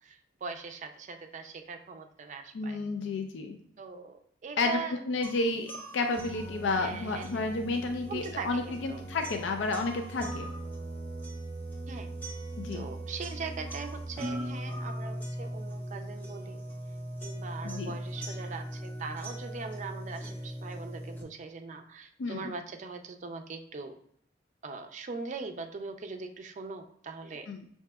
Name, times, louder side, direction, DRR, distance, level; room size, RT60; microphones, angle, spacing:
voice 1, 0.0-2.8 3.8-5.0 6.7-7.5 8.1-9.0 11.9-12.1 12.7-16.6 17.2-23.9 24.6-27.5, right 4 dB, 40° right, 6 dB, 0.4 m, -41 dB
voice 2, 2.5-3.6 4.6-10.5 12.6-12.8 17.6-17.9 22.2-22.5 27.5-27.7, left 3 dB, 75° left, 4 dB, 0.4 m, -31 dB
sound 1, 5.2-21.2, right 1 dB, 10° left, 0.6 m, -39 dB
5.8 x 2.7 x 2.3 m, 0.66 s
head